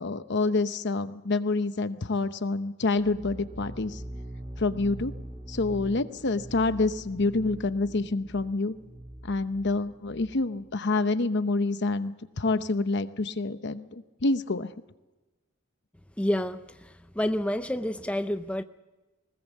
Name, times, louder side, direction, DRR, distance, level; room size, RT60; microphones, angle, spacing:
voice 1, 0.0-4.0 4.6-5.1 5.5-8.7 9.2-14.7, left 3 dB, 60° left, 11 dB, 0.9 m, -27 dB
sound 1, 3.0-10.6, right 1 dB, 30° right, 1.8 m, -43 dB
voice 2, 16.2-18.6, left 1 dB, 5° left, 9 dB, 0.6 m, -29 dB
20.0 x 19.5 x 7.3 m, 1.1 s
head